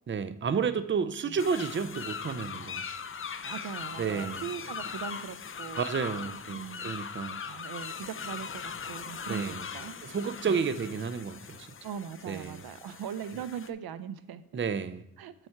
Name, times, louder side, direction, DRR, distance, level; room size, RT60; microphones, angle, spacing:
voice 1, 0.1-2.8 4.0-4.5 5.8-7.4 9.3-9.7 10.0-11.7 12.2-12.6 14.5-15.0, right 6 dB, 35° right, 12 dB, 0.5 m, -31 dB
sound 1, 1.4-13.7, left 6 dB, 35° left, 0.5 m, -40 dB
voice 2, 3.4-5.9 6.5-7.1 7.5-10.0 11.8-14.4 15.2-15.3, right 8 dB, 85° right, 13 dB, 0.5 m, -40 dB
7.9 x 4.3 x 5.7 m, 0.83 s
cardioid pair, 70°, 36 cm